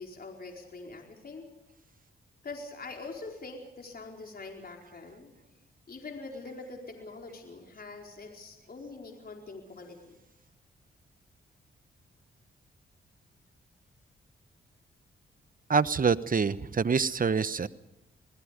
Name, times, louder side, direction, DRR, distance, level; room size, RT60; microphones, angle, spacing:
voice 1, 0.0-1.4 2.4-5.3 5.9-10.2, left 3 dB, 45° left, 1 dB, 4.7 m, -44 dB
voice 2, 15.7-17.7, right 5 dB, 40° right, 15 dB, 1.1 m, -26 dB
28.0 x 20.5 x 5.2 m, 0.92 s
cardioid pair, 55°, 21 cm